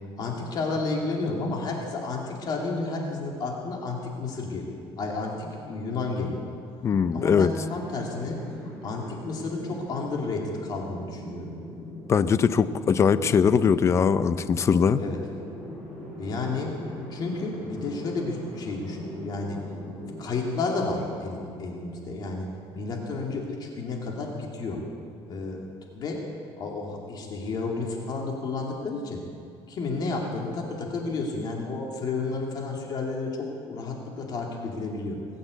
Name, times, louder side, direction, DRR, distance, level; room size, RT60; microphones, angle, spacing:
voice 1, 0.2-6.5 7.1-8.4 8.8-11.5 15.0-15.2 16.2-16.7 17.1-19.6 20.2-22.5 22.7-24.8 25.3-25.7 25.9-26.2 26.6-29.2 29.7-35.2, left 3 dB, 45° left, 0 dB, 2.6 m, -31 dB
voice 2, 6.8-7.5 12.1-15.0, left 6 dB, 30° left, 14 dB, 0.5 m, -21 dB
sound 1, 6.9-20.2, left 1 dB, 5° left, 5.2 m, -41 dB
19.5 x 8.6 x 8.2 m, 2.4 s
cardioid pair, 150°, 10 cm